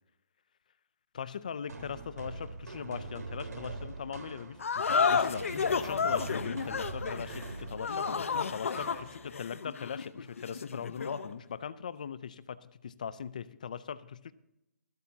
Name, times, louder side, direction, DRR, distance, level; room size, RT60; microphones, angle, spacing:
voice 1, 1.1-14.3, left 7 dB, 30° left, 16 dB, 0.4 m, -40 dB
sound 1, 1.7-9.5, right 3 dB, 80° right, 3.9 m, -43 dB
sound 2, 4.6-11.3, left 5 dB, 50° left, 0.8 m, -31 dB
25.5 x 8.6 x 2.8 m, 0.85 s
hypercardioid pair, 180°, 9 cm